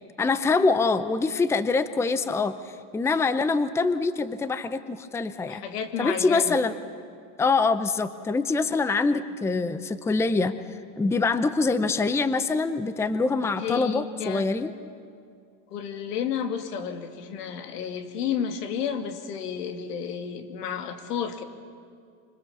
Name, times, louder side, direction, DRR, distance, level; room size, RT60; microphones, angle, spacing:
voice 1, 0.2-2.6 2.9-5.6 6.0-6.8 7.4-10.5 11.0-14.7, left 4 dB, 5° left, 12 dB, 0.6 m, -24 dB
voice 2, 5.5-6.6 13.6-14.5 15.7-21.4, left 7 dB, 90° left, 7 dB, 2.6 m, -31 dB
25.5 x 25.5 x 7.2 m, 2.2 s
supercardioid pair, 135°, 46 cm